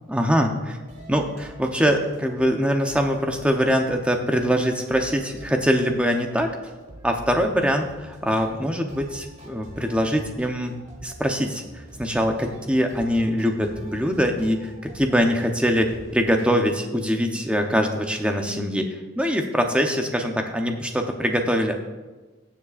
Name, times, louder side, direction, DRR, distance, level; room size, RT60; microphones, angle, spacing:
voice 1, 0.1-0.8 1.1-6.5 7.0-10.7 11.0-21.8, equal, 5° right, 3 dB, 0.7 m, -23 dB
sound 1, 0.9-16.6, right 1 dB, 35° right, 1.8 m, -45 dB
20.5 x 7.3 x 2.5 m, 1.2 s
head